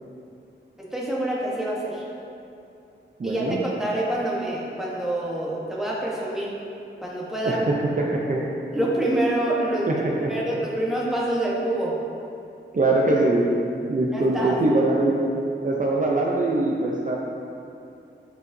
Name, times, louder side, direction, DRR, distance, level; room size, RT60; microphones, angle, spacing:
voice 1, 0.9-2.0 3.2-6.5 7.0-7.6 8.7-9.9 10.3-11.9 14.1-14.6, right 1 dB, ahead, -6 dB, 1.2 m, -26 dB
voice 2, 3.2-3.6 7.4-8.4 9.7-10.3 12.7-13.5 13.9-15.2 15.6-17.2, right 2 dB, 45° right, -3 dB, 0.6 m, -22 dB
9.1 x 4.6 x 2.7 m, 2.6 s
wide cardioid pair, 95°, 19 cm